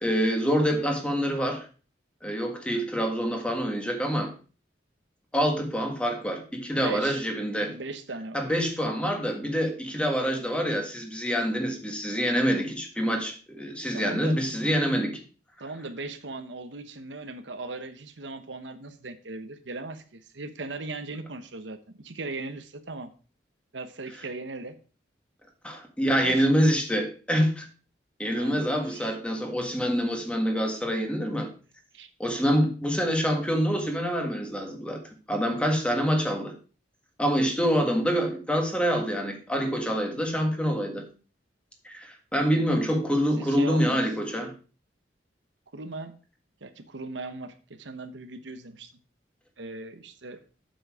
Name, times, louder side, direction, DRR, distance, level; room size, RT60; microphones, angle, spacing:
voice 1, 0.0-1.7 2.2-4.3 5.3-7.8 8.3-15.2 25.6-27.7 28.2-31.5 32.2-35.0 35.3-36.5 37.2-41.1 41.8-44.5, equal, 5° left, 1.7 m, -26 dB
voice 2, 6.8-7.2 7.6-8.5 13.9-14.4 15.6-23.1 23.7-24.7 26.2-26.5 28.3-29.2 31.9-32.1 43.4-44.0 45.7-46.1 46.6-48.9 49.6-50.4, right 3 dB, 85° right, 1.1 m, -38 dB
7.8 x 7.2 x 4.9 m
head